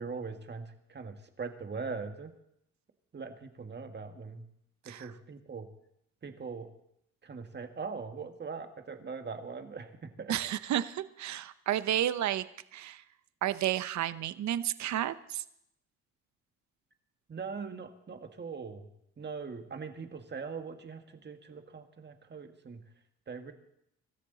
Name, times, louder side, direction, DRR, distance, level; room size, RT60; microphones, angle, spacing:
voice 1, 0.0-2.3 3.1-4.5 4.9-5.7 6.2-6.7 7.2-10.4 17.3-18.9 19.2-22.8 23.3-23.5, right 5 dB, 35° right, 6 dB, 1.9 m, -41 dB
voice 2, 10.3-12.4 12.7-13.0 13.4-15.4, right 12 dB, 65° right, 14 dB, 0.8 m, -31 dB
24.5 x 13.0 x 4.0 m, 0.76 s
cardioid pair, 90°, 30 cm